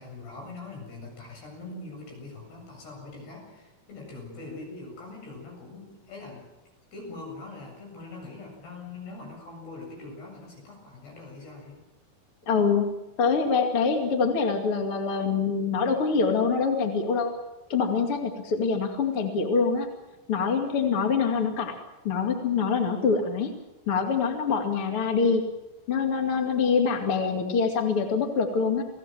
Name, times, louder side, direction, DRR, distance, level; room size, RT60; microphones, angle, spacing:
voice 1, 0.0-6.5 6.9-11.8, left 3 dB, 70° left, 1 dB, 9.7 m, -42 dB
voice 2, 12.5-12.9 13.2-17.3 17.7-19.9 20.3-21.8 22.0-23.5 23.9-25.4 25.9-28.8, left 5 dB, 40° left, 4 dB, 2.7 m, -25 dB
29.5 x 18.5 x 7.6 m, 1.0 s
omnidirectional pair, 4.8 m